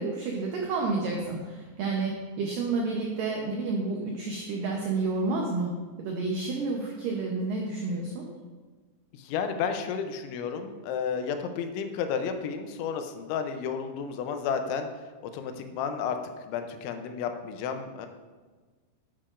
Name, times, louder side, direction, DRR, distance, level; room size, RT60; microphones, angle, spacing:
voice 1, 0.0-8.3, right 3 dB, 85° right, 0 dB, 1.9 m, -30 dB
voice 2, 9.1-14.9 15.3-18.1, left 6 dB, 90° left, 7 dB, 3.1 m, -32 dB
9.9 x 9.6 x 2.5 m, 1.4 s
omnidirectional pair, 5.2 m